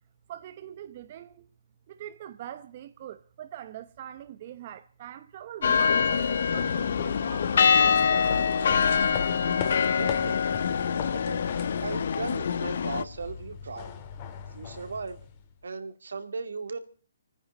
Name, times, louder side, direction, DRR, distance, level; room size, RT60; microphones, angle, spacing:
voice 1, 0.3-1.5 1.9-9.2, right 11 dB, 40° right, 0.8 m, -43 dB
sound 1, 5.6-13.0, left 6 dB, 60° left, 0.9 m, -25 dB
sound 2, 6.0-15.6, left 7 dB, 30° left, 2.1 m, -41 dB
voice 2, 9.8-10.4 11.1-11.4 11.8-13.9 14.5-15.2 15.6-16.8, right 4 dB, 80° right, 2.2 m, -37 dB
25.5 x 9.9 x 5.3 m
hypercardioid pair, 155°, 0 cm